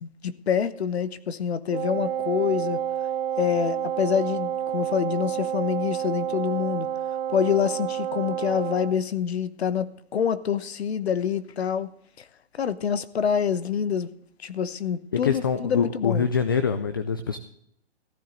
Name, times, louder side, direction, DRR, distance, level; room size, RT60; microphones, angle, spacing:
voice 1, 0.0-2.8 3.4-6.9 7.3-11.9 12.2-12.3 12.5-14.1 14.4-16.3, left 8 dB, 70° left, 1.0 m, -26 dB
Wind instrument woodwind instrument, 1.7-9.0, right 10 dB, 60° right, 0.6 m, -29 dB
voice 2, 15.1-17.4, left 6 dB, 20° left, 0.3 m, -25 dB
15.0 x 10.0 x 3.8 m
hypercardioid pair, 145°, 33 cm